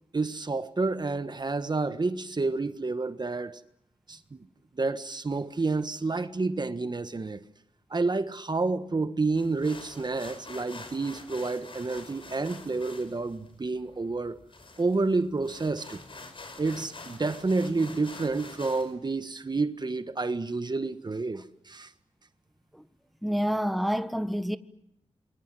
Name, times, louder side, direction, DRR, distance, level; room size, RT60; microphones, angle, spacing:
voice 1, 0.1-3.6 4.1-4.4 4.7-7.4 7.9-14.4 14.8-16.0 16.6-21.9, right 3 dB, 40° right, 1.4 m, -29 dB
sound 1, 9.3-18.9, left 3 dB, 50° left, 5.8 m, -47 dB
voice 2, 23.2-24.6, equal, ahead, 1.4 m, -28 dB
28.0 x 23.0 x 7.7 m
cardioid pair, 60°, 11 cm